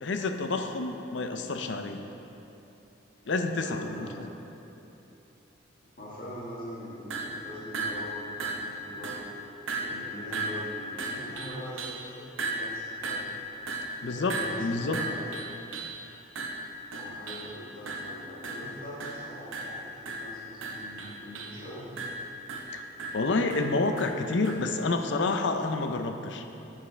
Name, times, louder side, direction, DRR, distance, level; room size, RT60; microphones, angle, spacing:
voice 1, 0.0-2.0 3.3-4.3 14.0-15.0 22.7-22.8 23.1-26.4, left 3 dB, 70° left, 6 dB, 0.5 m, -29 dB
voice 2, 3.6-4.1 6.0-9.2 9.8-13.2 14.0-15.3 16.9-21.9, equal, 45° left, -8 dB, 1.4 m, -42 dB
sound 1, 7.1-7.4 7.7-8.1 8.4-8.8 9.0-9.3 9.7-10.1 10.3-12.1 12.4-16.0 16.4-17.5 17.9-18.2 18.4-18.7 19.0-19.3 19.5-21.6 22.0-24.7, right 2 dB, 90° right, 0.8 m, -35 dB
10.5 x 7.5 x 3.3 m, 3.0 s
head